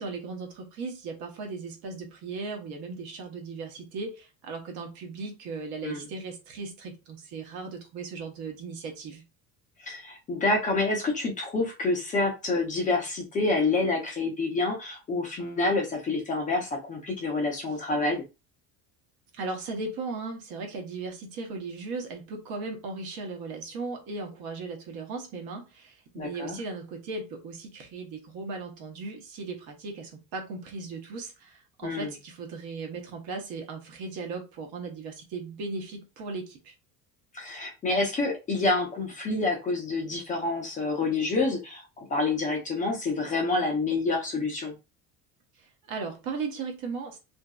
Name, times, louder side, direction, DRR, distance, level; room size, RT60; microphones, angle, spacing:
voice 1, 0.0-9.2 19.3-36.7 45.6-47.2, right 4 dB, 65° right, 1.1 m, -37 dB
voice 2, 9.8-18.2 26.2-26.6 31.8-32.1 37.3-44.7, left 3 dB, 20° left, 0.6 m, -28 dB
2.8 x 2.6 x 2.3 m
cardioid pair, 175°, 38 cm